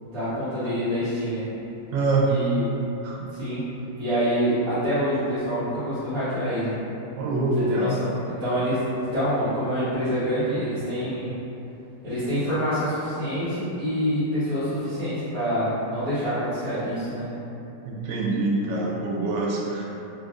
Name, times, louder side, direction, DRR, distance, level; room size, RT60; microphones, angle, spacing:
voice 1, 0.0-1.5 2.2-2.6 3.3-3.7 4.0-6.7 7.7-11.3 12.0-17.3, equal, 50° right, -19 dB, 1.8 m, -26 dB
voice 2, 1.9-2.3 3.0-3.3 7.2-8.0 17.8-19.9, right 2 dB, 85° right, -2 dB, 1.3 m, -25 dB
3.8 x 2.7 x 2.3 m, 2.9 s
omnidirectional pair, 2.0 m